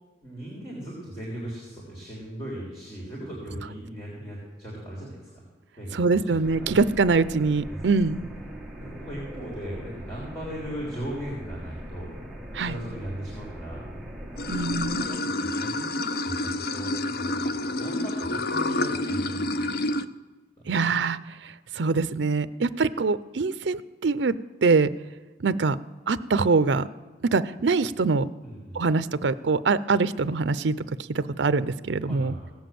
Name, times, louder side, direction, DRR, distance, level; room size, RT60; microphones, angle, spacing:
voice 1, 0.2-5.4 5.8-6.7 7.7-7.8 8.7-12.1 12.6-13.8 14.8-20.1 20.8-21.0 28.4-28.8 32.0-32.5, equal, 15° left, -6 dB, 3.5 m, -38 dB
voice 2, 5.9-8.2 12.5-12.8 14.5-15.1 20.7-21.2 21.4-24.3 24.6-24.9 25.4-25.8 26.1-26.9 27.3-28.3 28.8-30.7 31.1-32.4, right 4 dB, 70° right, 15 dB, 0.5 m, -24 dB
sound 1, 6.4-15.1, equal, 5° right, 1.3 m, -40 dB
Water / Sink (filling or washing), 14.4-20.0, left 2 dB, 55° left, 0.5 m, -28 dB
17.0 x 7.2 x 7.7 m, 1.3 s
head